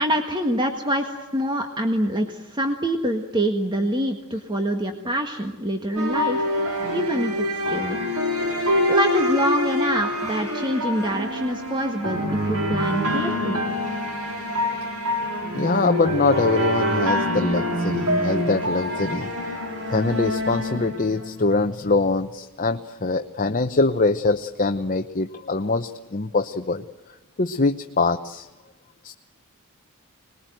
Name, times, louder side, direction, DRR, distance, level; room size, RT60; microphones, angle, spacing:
voice 1, 0.0-6.5 6.9-8.0 8.9-13.6, equal, 20° right, 4 dB, 1.6 m, -25 dB
sound 1, 6.0-21.5, left 1 dB, 85° right, 4.3 m, -25 dB
voice 2, 15.5-19.3 19.9-26.8 27.4-28.5 29.0-29.1, left 3 dB, 40° left, 7 dB, 0.8 m, -23 dB
26.0 x 20.5 x 9.2 m, 1.1 s
head